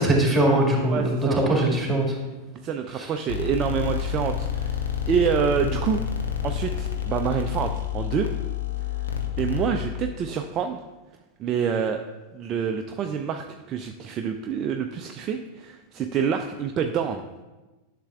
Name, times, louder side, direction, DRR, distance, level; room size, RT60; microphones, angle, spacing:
voice 1, 0.0-2.1 3.0-3.1, right 1 dB, 5° right, -1 dB, 2.0 m, -21 dB
voice 2, 0.9-1.4 2.6-6.0 6.4-8.3 9.4-10.8 11.4-12.0 12.3-17.2, right 7 dB, 30° right, 5 dB, 0.4 m, -27 dB
sound 1, 3.3-10.1, left 8 dB, 65° left, 0.9 m, -29 dB
11.5 x 6.6 x 2.4 m, 1.1 s
figure-of-eight pair, 90°, 0 cm